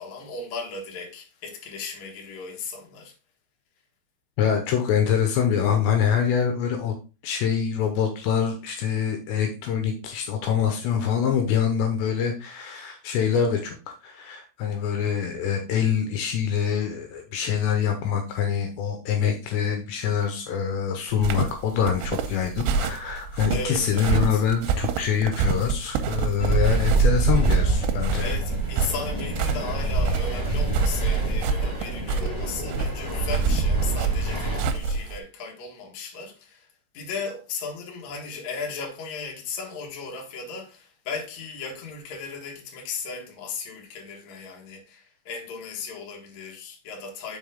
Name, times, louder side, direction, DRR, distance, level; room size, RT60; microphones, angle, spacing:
voice 1, 0.0-3.1 23.5-24.4 28.2-36.7 36.9-47.4, left 4 dB, 60° left, 2.0 m, -36 dB
voice 2, 4.4-6.9 7.2-13.8 14.0-28.3, left 8 dB, 75° left, 2.8 m, -25 dB
sound 1, 21.1-35.2, right 5 dB, 80° right, 2.7 m, -28 dB
sound 2, 26.4-34.6, right 3 dB, 15° left, 0.8 m, -25 dB
6.3 x 5.3 x 3.7 m
omnidirectional pair, 5.5 m